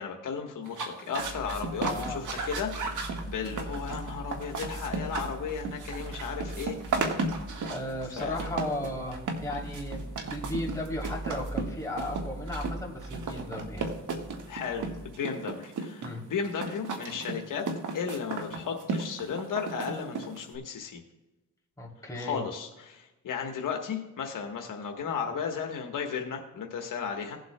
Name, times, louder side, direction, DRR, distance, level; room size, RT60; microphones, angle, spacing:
voice 1, 0.0-7.2 8.2-8.4 14.5-17.7 17.9-21.0 22.1-27.4, left 6 dB, 80° left, 2 dB, 1.3 m, -35 dB
sound 1, 0.7-20.6, right 4 dB, 70° right, 1.6 m, -35 dB
sound 2, 1.1-15.1, right 1 dB, 45° right, 2.5 m, -42 dB
voice 2, 1.7-2.2 7.7-13.9 16.0-16.2 21.8-22.4, left 1 dB, 10° left, -3 dB, 3.0 m, -36 dB
17.5 x 7.8 x 2.2 m, 1.0 s
cardioid pair, 80°, 32 cm